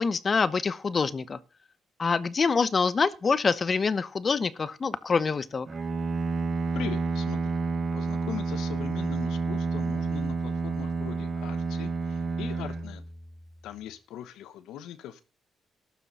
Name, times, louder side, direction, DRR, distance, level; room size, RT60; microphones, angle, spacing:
voice 1, 0.0-1.4 2.0-5.7, left 5 dB, 35° left, 0.9 m, -26 dB
Bowed string instrument, 5.7-13.6, right 4 dB, 40° right, 2.5 m, -30 dB
voice 2, 6.7-7.5 7.9-13.0 13.6-15.2, left 11 dB, 85° left, 0.9 m, -41 dB
12.5 x 6.9 x 5.5 m
cardioid pair, 90°, 0 cm